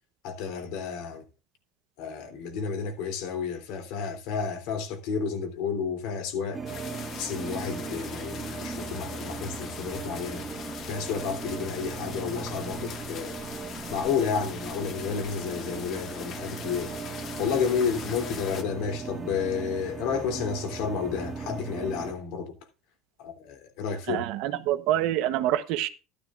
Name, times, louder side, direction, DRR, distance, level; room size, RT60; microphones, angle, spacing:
voice 1, 0.2-1.2 2.0-6.6 7.2-10.5 10.9-13.3 13.9-16.9 17.4-22.5 23.2-24.2, left 6 dB, 70° left, 3.2 m, -31 dB
sound 1, 6.5-22.1, right 5 dB, 20° right, 1.7 m, -38 dB
sound 2, 6.7-18.6, left 7 dB, 45° left, 1.6 m, -41 dB
voice 2, 24.1-25.9, right 13 dB, 70° right, 1.0 m, -26 dB
13.0 x 12.0 x 2.5 m
supercardioid pair, 125°, 0 cm